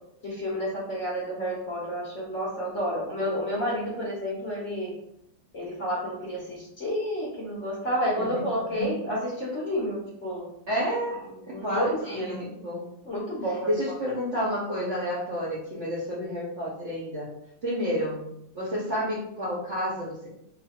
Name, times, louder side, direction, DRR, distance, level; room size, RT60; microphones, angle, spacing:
voice 1, 0.2-5.0 5.5-10.5 11.5-12.3 13.0-14.0, equal, 50° left, -5 dB, 0.9 m, -30 dB
voice 2, 10.7-11.2 11.5-12.9 13.6-17.3 17.6-18.2 18.5-20.3, equal, 50° right, -6 dB, 0.9 m, -30 dB
3.1 x 2.1 x 4.1 m, 0.77 s
omnidirectional pair, 2.1 m